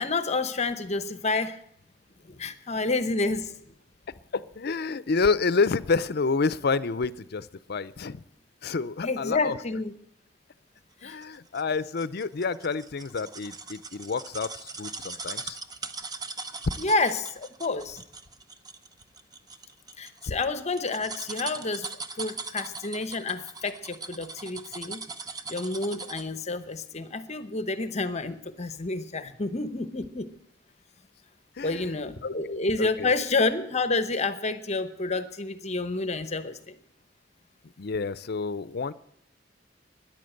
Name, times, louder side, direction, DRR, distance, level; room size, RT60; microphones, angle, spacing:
voice 1, 0.0-1.6 2.3-3.5 9.0-9.9 11.0-11.2 16.8-18.0 20.0-21.9 22.2-25.0 25.5-30.3 31.6-36.7, left 3 dB, 40° left, 0.9 m, -29 dB
voice 2, 4.3-8.2 8.6-9.6 11.0-15.6 20.3-20.4 31.6-32.0 32.2-33.1 37.8-38.9, left 4 dB, 60° left, 0.6 m, -29 dB
sound 1, 11.2-26.4 26.8-26.9, right 4 dB, 20° right, 0.8 m, -40 dB
14.0 x 10.5 x 7.8 m
head